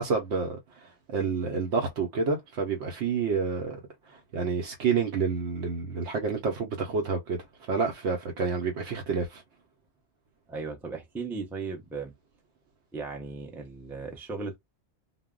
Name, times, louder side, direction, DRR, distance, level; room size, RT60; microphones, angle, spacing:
voice 1, 0.0-9.4, right 5 dB, 85° right, 0.9 m, -29 dB
voice 2, 10.5-12.1 12.9-14.6, right 4 dB, 5° right, 0.4 m, -36 dB
2.1 x 2.0 x 3.5 m
omnidirectional pair, 1.1 m